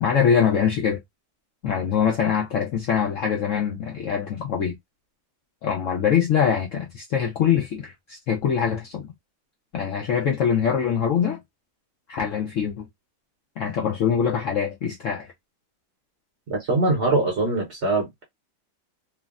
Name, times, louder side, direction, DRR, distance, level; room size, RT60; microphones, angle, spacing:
voice 1, 0.0-1.0 1.6-4.8 5.6-9.1 9.7-11.4 12.1-12.9 13.6-15.3, left 7 dB, 70° left, 0.7 m, -23 dB
voice 2, 16.5-18.2, right 2 dB, 55° right, 0.8 m, -23 dB
3.2 x 2.0 x 2.4 m
omnidirectional pair, 1.8 m